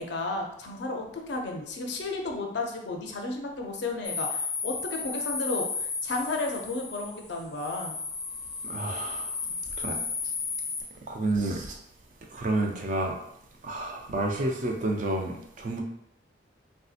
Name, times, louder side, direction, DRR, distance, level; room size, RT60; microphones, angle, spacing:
voice 1, 0.0-8.0, left 2 dB, 65° left, 2 dB, 0.5 m, -33 dB
sound 1, 4.0-10.8, left 4 dB, 15° left, 0.5 m, -34 dB
voice 2, 8.6-9.3 9.8-10.0 11.1-11.8 12.3-13.2 13.6-15.8, right 2 dB, 40° right, 2 dB, 0.4 m, -30 dB
3.3 x 2.7 x 2.4 m, 0.74 s
head